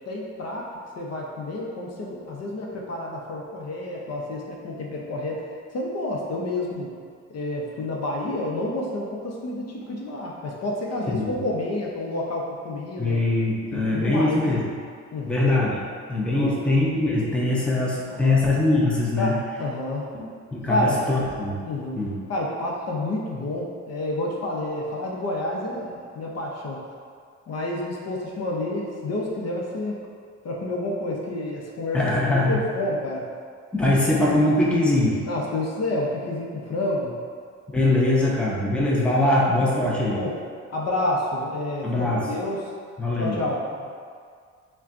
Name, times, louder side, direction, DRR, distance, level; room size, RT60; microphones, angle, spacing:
voice 1, 0.1-0.7 1.0-5.4 5.7-6.9 7.3-13.2 13.7-14.4 15.1-15.5 16.3-16.6 18.1-18.4 19.2-20.1 20.7-21.0 21.7-22.0 22.3-26.8 27.5-30.0 30.4-33.2 35.3-37.1 38.0-38.3 38.7-38.8 40.1-40.4 40.7-42.6 43.1-43.6, left 1 dB, 55° left, -3 dB, 0.8 m, -29 dB
voice 2, 13.0-14.6 15.3-15.8 16.1-19.3 20.1-20.3 20.5-21.6 21.9-22.2 31.9-32.6 33.7-35.2 37.7-40.2 41.8-42.3 43.0-43.4, left 2 dB, 5° left, -5 dB, 0.6 m, -22 dB
5.6 x 2.3 x 2.6 m, 2.1 s
cardioid pair, 90°, 30 cm